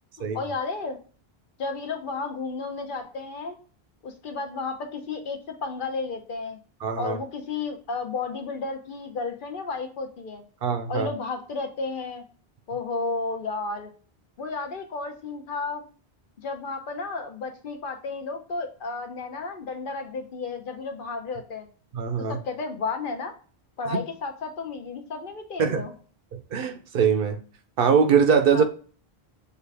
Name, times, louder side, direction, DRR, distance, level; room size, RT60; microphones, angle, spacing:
voice 1, 0.2-1.0 1.6-3.6 4.0-6.6 7.0-10.4 10.9-12.2 12.7-13.9 14.4-15.9 16.4-21.7 22.2-23.3 23.8-25.9 28.5-28.6, left 4 dB, 60° left, 0.8 m, -32 dB
voice 2, 6.8-7.2 10.6-11.1 21.9-22.4 23.9-24.0 25.6-25.8 26.5-27.4 27.8-28.6, right 6 dB, 65° right, 0.7 m, -22 dB
6.6 x 2.4 x 3.3 m
omnidirectional pair, 1.0 m